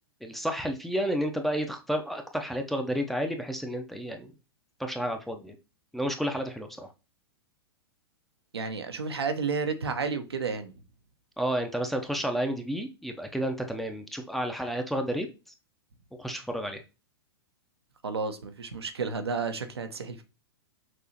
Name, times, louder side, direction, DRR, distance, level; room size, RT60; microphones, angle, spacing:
voice 1, 0.2-4.3 4.8-5.6 5.9-6.9 11.4-15.3 16.2-16.8, equal, ahead, 0.6 m, -31 dB
voice 2, 8.5-10.7 18.0-20.2, right 4 dB, 80° right, 0.7 m, -31 dB
6.0 x 2.8 x 2.8 m
figure-of-eight pair, 105°, 13 cm